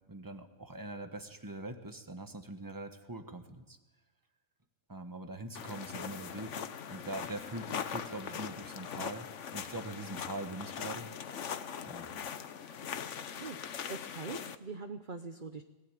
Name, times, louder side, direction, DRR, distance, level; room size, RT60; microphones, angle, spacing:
voice 1, 0.1-3.8 4.9-6.6 6.9-11.1 11.8-12.1, right 2 dB, 15° right, 7 dB, 1.4 m, -43 dB
sound 1, 5.5-14.6, left 7 dB, 60° left, 1.2 m, -41 dB
voice 2, 13.9-15.6, right 4 dB, 40° right, 8 dB, 1.0 m, -42 dB
20.5 x 17.5 x 9.2 m, 1.2 s
omnidirectional pair, 1.5 m